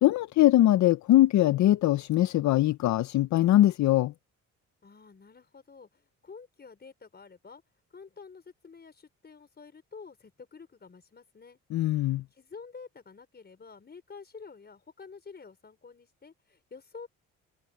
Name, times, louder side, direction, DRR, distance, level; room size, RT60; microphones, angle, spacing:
voice 1, 0.0-4.1 11.7-12.2, left 14 dB, 70° left, 0.6 m, -22 dB
voice 2, 4.8-7.6 7.9-11.6 12.3-17.1, left 5 dB, 35° left, 4.8 m, -49 dB
cardioid pair, 90°, 30 cm